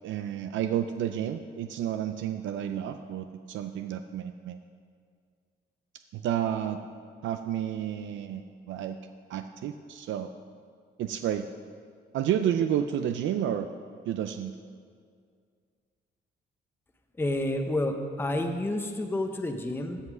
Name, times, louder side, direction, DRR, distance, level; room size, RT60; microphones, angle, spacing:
voice 1, 0.0-4.6 6.1-6.8 7.2-9.0 9.3-10.3 11.0-11.5 12.1-13.7 14.1-14.6, right 10 dB, 75° right, 8 dB, 0.5 m, -30 dB
voice 2, 17.2-20.0, left 1 dB, 10° left, 4 dB, 0.7 m, -29 dB
16.0 x 5.4 x 6.1 m, 2.1 s
cardioid pair, 125°, 19 cm